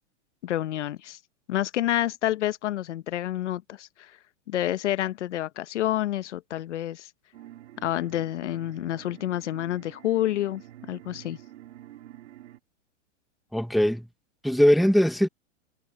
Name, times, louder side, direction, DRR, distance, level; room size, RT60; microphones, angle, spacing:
voice 1, 0.4-1.2 1.5-4.2 4.5-7.1 7.8-10.6 10.9-11.4, left 13 dB, 70° left, 1.1 m, -28 dB
sound 1, 7.3-12.6, right 13 dB, 60° right, 3.3 m, -48 dB
voice 2, 13.5-14.1 14.4-15.3, equal, ahead, 0.9 m, -20 dB
supercardioid pair, 175°, 36 cm